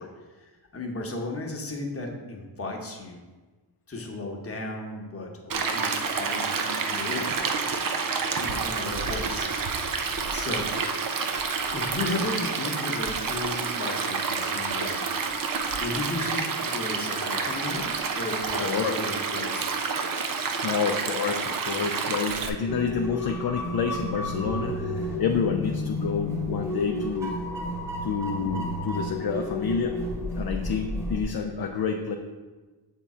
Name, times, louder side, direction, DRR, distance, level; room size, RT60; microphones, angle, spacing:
voice 1, 0.0-3.2 3.9-7.5 8.4-9.5 10.3-10.7 11.0-11.2 11.7-15.0 15.8-19.6, left 2 dB, 30° left, 0 dB, 1.1 m, -35 dB
Stream, 5.5-22.5, right 5 dB, 45° right, 0.6 m, -29 dB
voice 2, 18.6-19.0 20.6-27.4 28.0-30.0 30.4-32.2, left 6 dB, 50° left, 3 dB, 0.5 m, -28 dB
sound 1, 22.7-31.2, left 1 dB, 5° right, 1.1 m, -31 dB
6.9 x 3.7 x 4.3 m, 1.3 s
cardioid pair, 85°, 48 cm